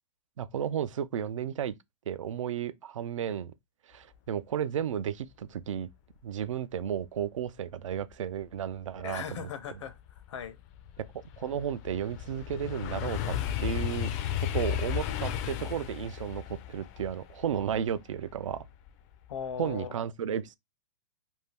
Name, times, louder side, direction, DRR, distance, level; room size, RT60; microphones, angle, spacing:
voice 1, 0.4-1.7 2.1-3.5 3.9-5.9 6.2-9.2 11.0-11.1 11.4-14.1 14.5-18.7 19.6-20.6, right 9 dB, 90° right, 0.4 m, -33 dB
voice 2, 9.0-10.6 19.3-20.0, left 8 dB, 70° left, 0.7 m, -38 dB
sound 1, 9.8-18.9 19.3-19.7, left 11 dB, 30° left, 0.4 m, -34 dB
2.6 x 2.2 x 3.3 m
hypercardioid pair, 145°, 16 cm